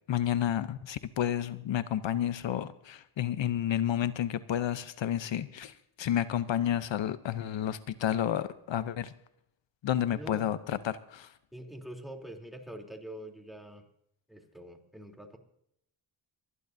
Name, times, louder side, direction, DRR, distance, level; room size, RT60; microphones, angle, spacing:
voice 1, 0.1-9.1 9.8-11.3, left 10 dB, 65° left, 14 dB, 0.8 m, -31 dB
voice 2, 10.1-10.5 11.5-13.8 14.3-15.4, right 1 dB, ahead, 3 dB, 3.3 m, -45 dB
28.0 x 11.0 x 2.7 m, 0.76 s
cardioid pair, 65°, 49 cm